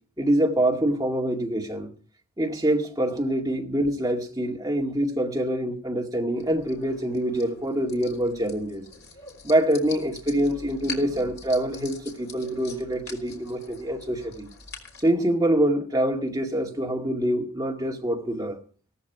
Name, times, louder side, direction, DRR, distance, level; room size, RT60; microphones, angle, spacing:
voice 1, 0.2-1.9 2.4-8.8 9.4-14.5 15.0-18.6, right 1 dB, 15° right, 2.1 m, -25 dB
sound 1, 6.4-15.1, left 4 dB, 45° left, 3.7 m, -44 dB
17.5 x 13.5 x 4.7 m
head